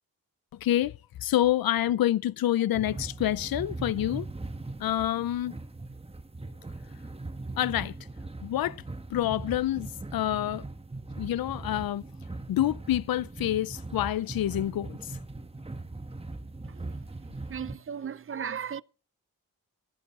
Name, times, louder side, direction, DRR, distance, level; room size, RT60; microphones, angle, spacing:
voice 1, 0.5-4.3 4.8-5.6 7.6-7.9 8.4-8.8 9.1-10.7 11.2-12.0 12.5-15.2, left 13 dB, 85° left, 0.5 m, -27 dB
sound 1, 2.7-17.7, right 2 dB, 15° right, 1.0 m, -40 dB
voice 2, 16.7-17.0 17.5-18.8, right 7 dB, 40° right, 0.5 m, -36 dB
16.0 x 8.5 x 4.2 m
wide cardioid pair, 100°, 35 cm